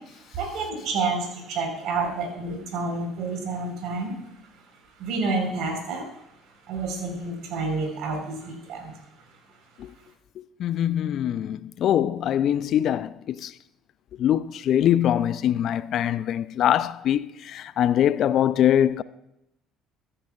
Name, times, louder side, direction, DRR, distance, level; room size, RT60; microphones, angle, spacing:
voice 1, 0.3-4.2 5.0-6.1 6.7-9.0, right 3 dB, 60° right, 4.2 m, -29 dB
voice 2, 10.6-13.5 14.2-19.0, left 10 dB, 55° left, 0.4 m, -23 dB
23.0 x 9.8 x 2.4 m
hypercardioid pair, 55°, 0 cm